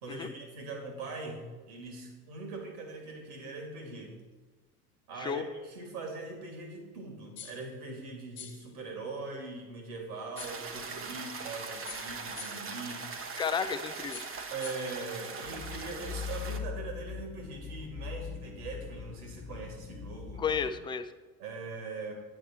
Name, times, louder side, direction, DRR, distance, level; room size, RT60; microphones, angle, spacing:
voice 1, 0.0-4.2 5.1-13.2 14.5-20.4 21.4-22.1, right 3 dB, 70° right, 2 dB, 2.5 m, -41 dB
sound 1, 7.4-7.7 8.4-8.7 10.4-10.7 11.9-12.8 14.1-15.0, left 7 dB, 85° left, 1.0 m, -46 dB
sound 2, 10.4-16.6, right 4 dB, 25° right, 0.9 m, -41 dB
voice 2, 13.4-14.2 20.4-21.1, left 6 dB, 10° left, 10 dB, 0.3 m, -32 dB
sound 3, 15.4-20.9, left 6 dB, 35° left, 1.4 m, -41 dB
9.3 x 8.7 x 4.3 m, 1.3 s
figure-of-eight pair, 70°, 47 cm